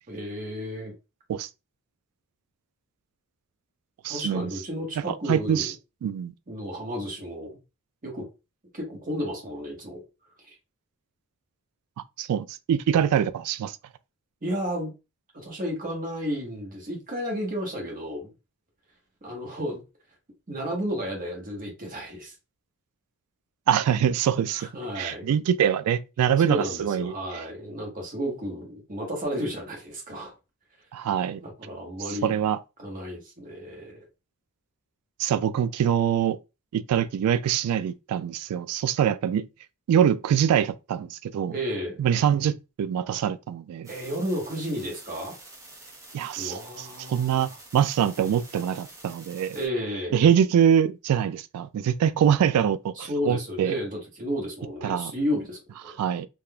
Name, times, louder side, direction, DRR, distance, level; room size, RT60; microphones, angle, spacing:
voice 1, 0.1-0.9 4.1-5.7 6.5-7.6 8.0-8.3 8.7-10.0 10.4-10.6 12.9-13.1 14.4-14.9 15.3-18.3 19.2-19.8 20.5-22.3 24.6-25.3 26.4-30.3 31.0-31.1 31.4-32.4 32.8-34.1 41.5-42.0 43.9-45.3 46.4-47.6 49.5-50.2 53.0-55.9, equal, 40° right, 1.1 m, -32 dB
voice 2, 4.0-4.5 5.3-5.7 6.0-6.3 12.2-13.8 23.7-24.7 25.0-27.1 30.9-31.4 32.1-32.6 35.2-36.4 36.7-39.5 39.9-41.6 42.0-43.9 46.1-46.6 47.1-49.6 50.1-53.7 54.8-55.1 56.0-56.3, right 9 dB, 90° right, 0.3 m, -24 dB
sound 1, 43.8-49.7, right 2 dB, 15° right, 0.7 m, -47 dB
3.5 x 2.4 x 2.2 m
head